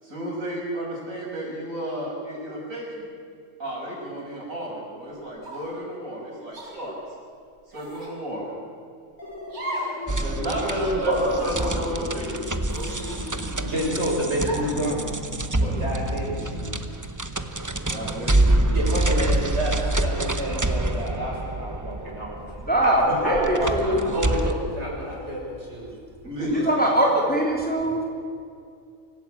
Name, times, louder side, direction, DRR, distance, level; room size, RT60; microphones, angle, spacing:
voice 1, 0.0-3.1 3.6-6.9 7.7-8.5 10.1-11.1 11.4-12.3 15.6-15.8 17.7-18.8 26.2-27.0, right 1 dB, 65° right, -3 dB, 7.2 m, -32 dB
sound 1, 5.4-5.8 6.5-6.7 7.7-8.2 9.5-10.0 10.4-10.5 11.3-11.8 12.7-13.6 14.4-14.8, right 1 dB, 90° right, 6.9 m, -35 dB
sound 2, 9.2-16.6, left 1 dB, 60° left, 3.4 m, -38 dB
sound 3, 10.1-24.5, right 2 dB, 15° right, 0.8 m, -26 dB
voice 2, 10.6-11.6 12.7-15.0 15.6-16.8 18.7-22.4 22.8-25.9, equal, 50° right, -2 dB, 6.5 m, -29 dB
voice 3, 22.7-24.1 26.5-28.0, right 1 dB, 5° left, -2 dB, 3.3 m, -22 dB
25.0 x 16.5 x 8.9 m, 2.3 s
omnidirectional pair, 1.5 m